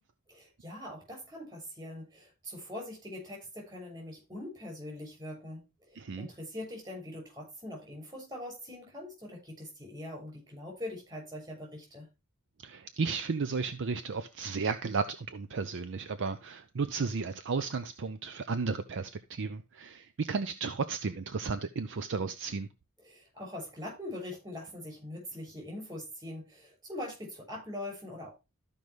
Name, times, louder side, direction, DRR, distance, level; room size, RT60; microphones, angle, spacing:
voice 1, 0.3-12.1 23.0-28.3, left 1 dB, 20° right, 6.6 m, -42 dB
voice 2, 6.0-6.3 12.6-22.7, right 4 dB, 60° right, 0.5 m, -34 dB
13.5 x 5.3 x 3.1 m
head